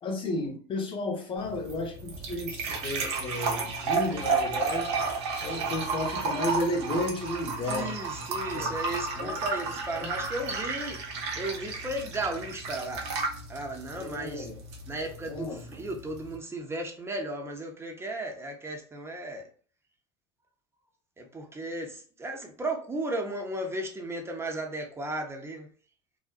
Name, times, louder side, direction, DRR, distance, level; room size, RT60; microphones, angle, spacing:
voice 1, 0.0-5.0 5.4-8.2 8.5-8.7 9.1-9.3 9.9-10.1 13.9-14.5 15.3-15.6, left 1 dB, 40° left, 3 dB, 0.8 m, -33 dB
sound 1, 1.4-16.3, right 4 dB, 65° right, 0.7 m, -33 dB
voice 2, 7.6-11.0 11.4-13.0 13.5-14.5 14.9-19.5 21.2-25.7, right 1 dB, 20° right, 2 dB, 0.7 m, -35 dB
2.6 x 2.1 x 2.4 m, 0.43 s
hypercardioid pair, 75°, 14 cm